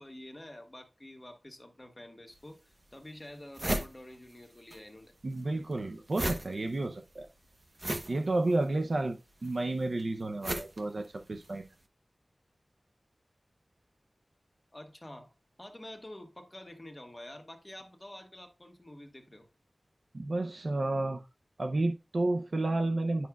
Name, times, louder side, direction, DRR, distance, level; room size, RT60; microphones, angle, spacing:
voice 1, 0.0-5.1 14.7-15.3 15.6-19.5, left 1 dB, 25° left, 1.4 m, -48 dB
sound 1, 2.3-2.4 2.9-3.0 3.2-4.8 5.1-11.6, right 1 dB, 40° right, 1.0 m, -37 dB
voice 2, 5.2-7.3 8.1-11.7 20.1-21.2 21.6-23.3, right 2 dB, 65° right, 0.6 m, -31 dB
9.5 x 5.8 x 2.3 m
wide cardioid pair, 75°, 0 cm